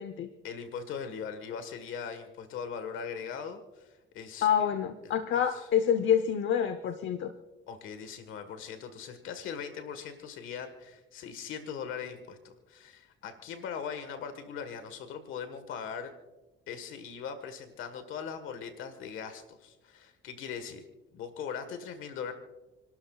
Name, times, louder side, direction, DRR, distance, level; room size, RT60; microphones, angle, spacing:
voice 1, 0.4-4.7 5.0-5.7 7.7-16.1 16.7-20.8 21.1-22.3, left 7 dB, 85° left, 9 dB, 1.5 m, -40 dB
voice 2, 4.4-7.3, left 8 dB, 70° left, 9 dB, 0.9 m, -27 dB
30.0 x 12.5 x 2.4 m, 1.2 s
cardioid pair, 90°, 20 cm